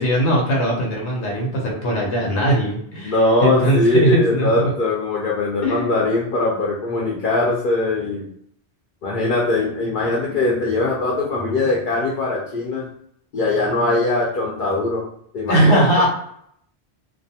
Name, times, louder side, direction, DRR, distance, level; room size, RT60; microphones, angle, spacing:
voice 1, 0.0-3.1 3.4-4.7 5.6-5.9 15.5-16.1, right 1 dB, 80° left, -2 dB, 1.0 m, -19 dB
voice 2, 3.0-8.3 9.0-12.9 13.3-15.1 15.3-16.1, left 2 dB, 55° left, -3 dB, 0.7 m, -21 dB
2.4 x 2.3 x 2.7 m, 0.69 s
omnidirectional pair, 1.1 m